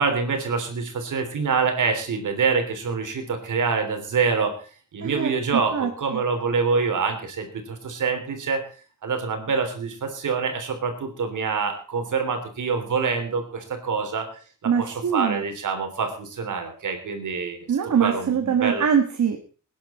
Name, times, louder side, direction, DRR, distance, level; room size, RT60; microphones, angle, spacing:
voice 1, 0.0-4.5 4.9-8.6 9.0-14.3 14.6-17.7 18.0-18.8, right 5 dB, 85° right, 5 dB, 3.5 m, -26 dB
voice 2, 5.0-6.2 14.6-15.4 17.7-19.4, right 7 dB, 70° right, 5 dB, 1.7 m, -23 dB
20.0 x 10.5 x 4.4 m, 0.39 s
wide cardioid pair, 160°, 30 cm